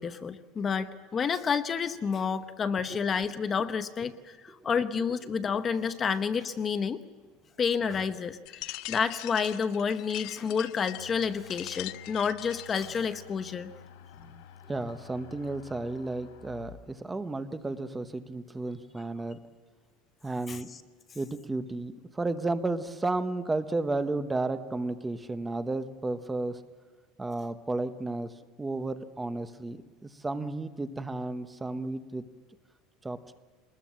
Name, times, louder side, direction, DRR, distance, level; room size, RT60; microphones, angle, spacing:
voice 1, 0.0-7.0 7.6-13.7 20.5-20.6, left 6 dB, 25° left, 11 dB, 0.9 m, -30 dB
sound 1, 8.5-13.0, left 19 dB, 60° left, 0.6 m, -42 dB
sound 2, 11.0-19.1, left 8 dB, 85° left, 3.4 m, -52 dB
voice 2, 14.7-19.4 20.2-20.7 21.1-26.6 27.2-28.3 28.6-32.3 33.0-33.4, right 2 dB, 10° right, 11 dB, 1.0 m, -33 dB
23.5 x 20.5 x 7.5 m, 1.4 s
cardioid pair, 150°, 0 cm